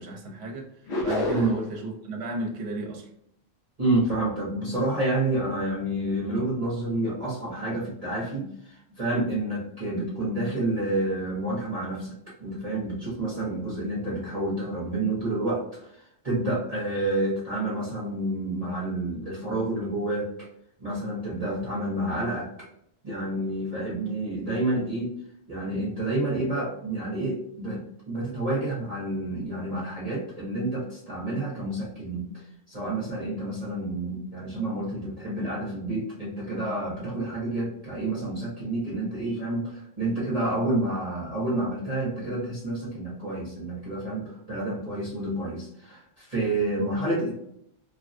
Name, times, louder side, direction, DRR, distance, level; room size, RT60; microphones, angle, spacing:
voice 1, 0.0-3.1, right 2 dB, 60° right, 0 dB, 1.0 m, -34 dB
sound 1, 0.9-1.8, left 2 dB, 60° left, 1.0 m, -28 dB
voice 2, 3.8-20.3 20.8-22.5 23.0-25.1 25.5-47.5, right 1 dB, 35° right, -7 dB, 0.9 m, -29 dB
3.3 x 2.2 x 2.5 m, 0.73 s
omnidirectional pair, 1.3 m